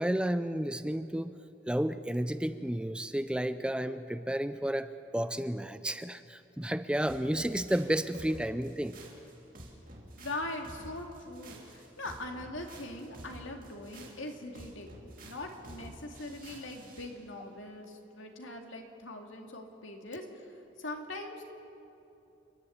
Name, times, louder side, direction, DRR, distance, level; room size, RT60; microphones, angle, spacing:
voice 1, 0.0-1.4 1.7-9.0, right 1 dB, 5° right, 11 dB, 0.4 m, -32 dB
sound 1, 7.1-17.1, right 1 dB, 45° right, 3.0 m, -50 dB
voice 2, 10.2-15.0 15.2-21.4, left 2 dB, 85° left, 3 dB, 2.3 m, -41 dB
29.5 x 11.0 x 8.6 m, 2.8 s
head